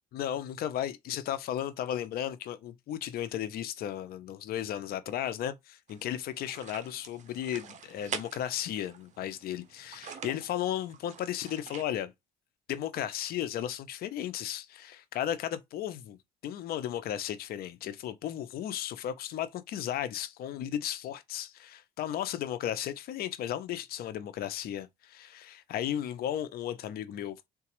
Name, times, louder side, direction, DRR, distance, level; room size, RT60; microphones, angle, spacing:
voice 1, 0.1-12.1 12.7-16.2 16.4-27.4, left 11 dB, 65° left, 0.5 m, -35 dB
sound 1, 5.9-11.8, right 7 dB, 45° right, 0.6 m, -45 dB
3.9 x 2.3 x 2.9 m
cardioid pair, 110°, 17 cm